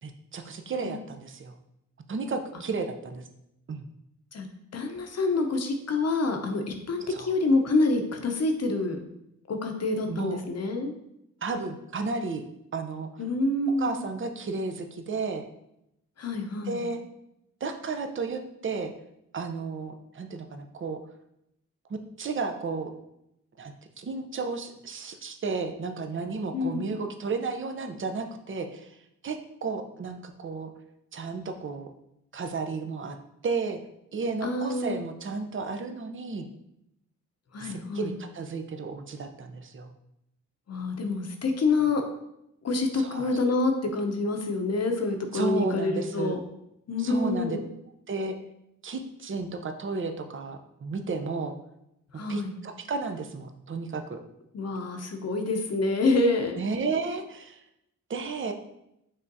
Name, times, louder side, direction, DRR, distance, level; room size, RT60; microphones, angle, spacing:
voice 1, 0.0-1.5 2.1-3.2 3.7-3.8 7.1-7.3 10.1-10.4 11.4-12.4 12.7-13.1 13.8-15.4 16.7-17.0 17.6-18.9 19.3-21.0 21.9-22.9 23.6-28.9 29.2-30.7 31.1-31.9 32.3-33.2 33.4-33.8 34.1-36.5 37.6-39.9 43.0-43.4 45.3-46.4 47.0-47.6 48.1-48.4 48.8-51.6 52.3-54.2 56.6-57.6 58.1-58.5, right 4 dB, 40° right, 6 dB, 0.7 m, -33 dB
voice 2, 4.7-9.0 9.5-10.9 13.2-14.0 16.2-16.8 26.5-27.0 34.4-35.0 37.5-38.2 40.7-42.0 42.6-46.4 46.9-47.6 52.1-52.5 54.5-56.6, left 3 dB, 50° left, 4 dB, 0.8 m, -27 dB
5.3 x 3.5 x 2.7 m, 0.81 s
supercardioid pair, 50°, 33 cm